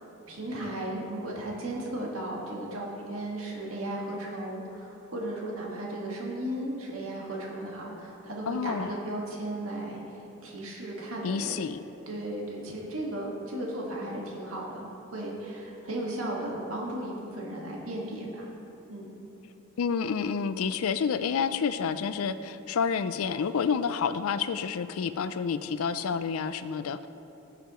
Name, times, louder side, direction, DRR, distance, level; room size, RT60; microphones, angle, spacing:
voice 1, 0.0-10.0 10.4-11.7 12.1-18.5 18.9-19.1, right 1 dB, 75° right, -3 dB, 1.8 m, -35 dB
voice 2, 8.5-8.9 11.2-11.8 19.8-27.1, left 6 dB, 80° left, 12 dB, 0.4 m, -29 dB
15.5 x 6.8 x 3.1 m, 2.9 s
head